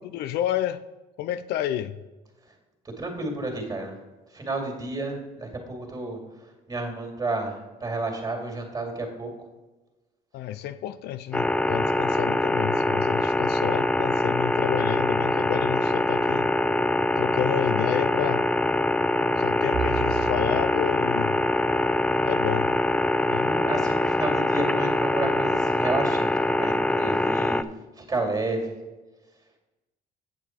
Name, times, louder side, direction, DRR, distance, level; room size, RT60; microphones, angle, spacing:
voice 1, 0.0-0.8 1.2-2.0 10.3-16.5 17.2-18.5 19.4-21.5 22.2-22.7 23.3-23.5, left 11 dB, 75° left, 0.4 m, -30 dB
voice 2, 3.0-3.9 4.3-6.2 6.7-9.3 23.4-27.6 28.0-28.7, right 2 dB, 20° right, 2.3 m, -31 dB
sound 1, 11.3-27.6, left 2 dB, 5° left, 0.3 m, -24 dB
Bowed string instrument, 19.7-24.1, right 8 dB, 50° right, 0.6 m, -38 dB
8.6 x 7.0 x 4.4 m
cardioid pair, 110°, 17 cm